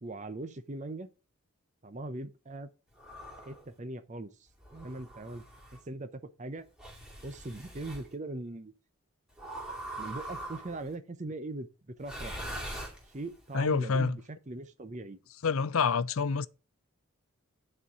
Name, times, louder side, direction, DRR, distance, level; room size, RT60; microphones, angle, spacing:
voice 1, 0.0-1.1 1.8-2.7 3.4-5.4 5.7-6.7 7.2-8.7 10.0-12.3 13.0-15.2, right 2 dB, 35° right, 0.6 m, -40 dB
sound 1, 3.0-3.6 4.6-5.8 6.8-8.1 9.4-10.9 12.0-13.4, right 1 dB, 5° right, 2.3 m, -42 dB
voice 2, 13.5-14.2 15.4-16.5, left 5 dB, 70° left, 0.5 m, -27 dB
9.7 x 4.4 x 6.1 m
head